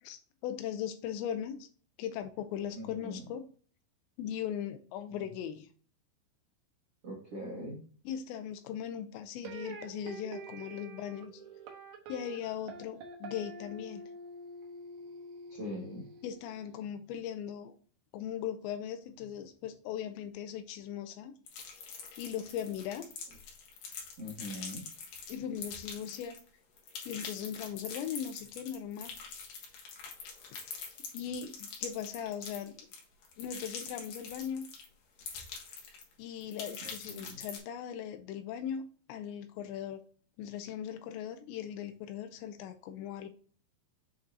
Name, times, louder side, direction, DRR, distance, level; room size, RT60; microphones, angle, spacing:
voice 1, 0.0-1.7 2.0-3.5 4.2-5.7 8.1-11.4 12.1-14.0 16.2-17.7 18.1-21.3 22.2-23.1 25.3-26.4 27.1-29.1 31.1-32.8 33.4-34.7 36.2-40.0 40.4-43.3, left 9 dB, 80° left, 9 dB, 2.8 m, -39 dB
voice 2, 2.7-3.2 5.1-5.2 7.0-7.8 15.5-16.0 24.2-24.9 36.8-37.4, equal, 60° right, -6 dB, 1.5 m, -42 dB
sound 1, 9.5-16.5, right 3 dB, 85° right, 1.9 m, -47 dB
sound 2, 21.5-26.5 26.8-34.8 35.2-36.1 36.4-37.6, left 6 dB, 60° left, 2.7 m, -44 dB
7.3 x 5.5 x 2.6 m, 0.42 s
omnidirectional pair, 5.3 m